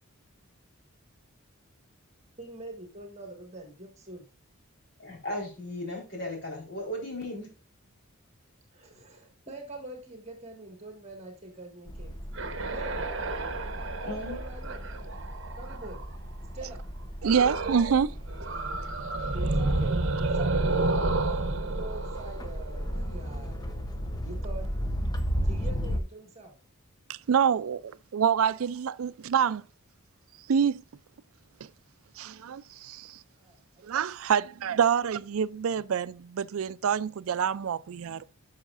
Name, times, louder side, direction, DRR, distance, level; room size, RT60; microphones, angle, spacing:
voice 1, 2.4-4.2 8.7-12.1 12.7-13.0 14.0-14.9 15.6-16.0 16.5-16.8 19.3-23.7 24.2-24.7 25.4-26.5 33.4-34.0, right 2 dB, 30° right, 1.8 m, -44 dB
voice 2, 5.0-7.5 14.1-14.4, left 1 dB, 55° left, 4.2 m, -36 dB
sound 1, 11.9-26.0, equal, 20° left, 0.7 m, -35 dB
sound 2, 12.2-16.2 17.3-18.0 18.3-23.2, right 2 dB, 55° right, 0.9 m, -30 dB
voice 3, 17.2-18.2 27.1-29.7 30.5-30.8 32.2-33.2 33.8-38.3, right 7 dB, 75° right, 0.4 m, -27 dB
12.0 x 6.2 x 2.5 m
head